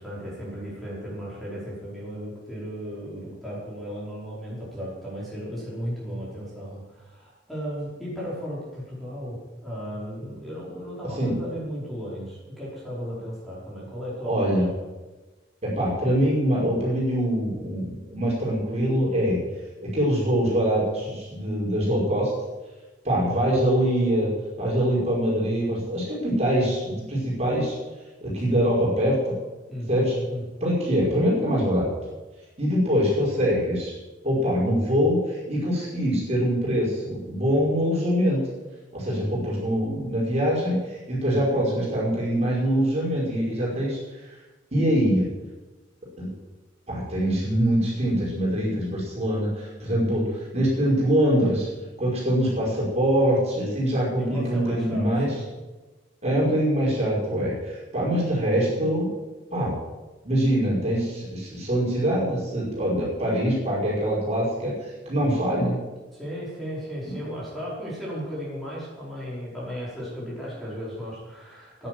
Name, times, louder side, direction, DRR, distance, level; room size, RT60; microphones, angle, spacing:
voice 1, 0.0-14.8 23.2-23.5 29.7-30.6 54.2-55.5 65.2-65.4 66.1-71.9, equal, ahead, -7 dB, 5.2 m, -35 dB
voice 2, 14.2-14.7 15.6-19.4 19.9-22.3 23.0-24.3 24.6-27.8 28.2-29.3 29.9-30.2 30.6-31.9 32.6-33.9 34.2-38.4 38.9-44.0 44.7-45.3 46.2-46.3 46.9-51.7 52.0-55.3 56.2-59.1 59.5-59.7 60.2-64.7 65.1-65.7 67.1-67.2, equal, 35° right, -5 dB, 5.4 m, -24 dB
10.5 x 10.5 x 9.4 m, 1.2 s
head